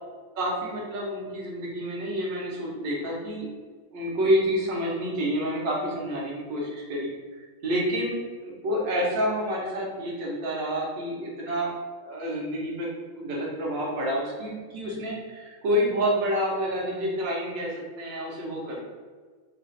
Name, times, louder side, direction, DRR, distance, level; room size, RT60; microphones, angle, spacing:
voice 1, 0.4-3.5 3.9-7.1 7.6-11.7 12.0-12.9 13.2-18.8, equal, 65° right, -4 dB, 1.7 m, -28 dB
3.8 x 2.4 x 4.2 m, 1.5 s
omnidirectional pair, 2.2 m